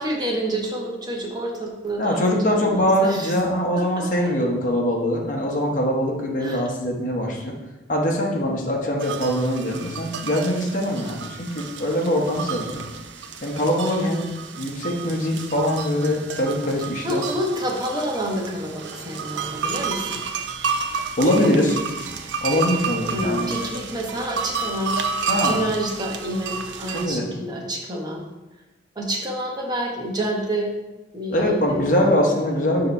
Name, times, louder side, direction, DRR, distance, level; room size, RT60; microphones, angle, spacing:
voice 1, 0.0-3.3 3.7-4.3 6.4-6.6 13.9-14.2 17.0-20.2 23.1-28.2 29.0-30.7 31.1-31.8 32.2-32.6, right 1 dB, 25° right, -1 dB, 1.0 m, -28 dB
voice 2, 2.0-7.5 7.9-12.9 13.4-14.3 14.6-17.2 21.2-22.0 22.4-23.5 25.3-25.6 27.0-27.2 31.3-32.9, equal, 45° left, -1 dB, 1.0 m, -22 dB
sound 1, 9.0-27.1, right 5 dB, 90° right, 0.5 m, -31 dB
6.5 x 2.9 x 5.3 m, 1.1 s
head